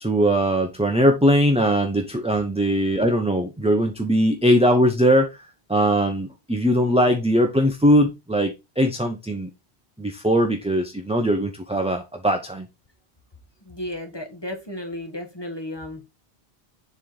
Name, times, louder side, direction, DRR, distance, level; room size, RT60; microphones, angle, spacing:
voice 1, 0.0-5.4 5.7-9.5 10.0-12.7, equal, 10° right, 0.5 m, -20 dB
voice 2, 13.7-16.1, left 1 dB, 25° left, 1.1 m, -34 dB
7.1 x 3.5 x 3.8 m
omnidirectional pair, 1.1 m